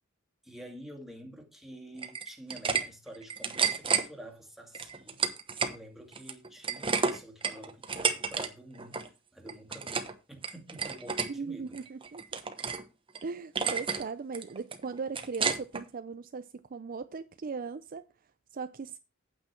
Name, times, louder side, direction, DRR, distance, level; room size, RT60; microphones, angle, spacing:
voice 1, 0.4-5.2 5.6-11.8, right 1 dB, ahead, 2.2 m, -49 dB
sound 1, 2.0-2.8 3.1-4.0 4.7-5.8 6.1-8.5 8.7-9.1 9.5-10.1 10.4-11.3 11.7-12.8 13.1-13.2 13.6-14.0 14.3-15.8, right 5 dB, 25° right, 1.0 m, -31 dB
voice 2, 11.3-12.2 13.2-18.0 18.5-19.0, right 4 dB, 45° right, 0.5 m, -38 dB
8.9 x 8.5 x 4.4 m
head